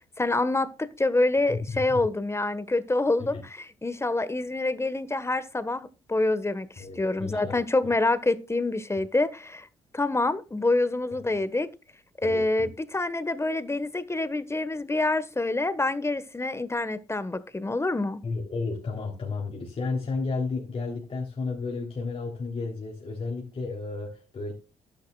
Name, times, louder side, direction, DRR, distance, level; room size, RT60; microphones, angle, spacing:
voice 1, 0.2-9.7 9.9-11.7 12.2-18.2, left 2 dB, 20° left, 1.4 m, -26 dB
voice 2, 1.5-2.0 3.2-3.4 6.8-7.6 12.2-12.7 18.2-24.5, left 4 dB, 45° left, 3.5 m, -32 dB
12.0 x 10.5 x 2.4 m
hypercardioid pair, 50°, 13 cm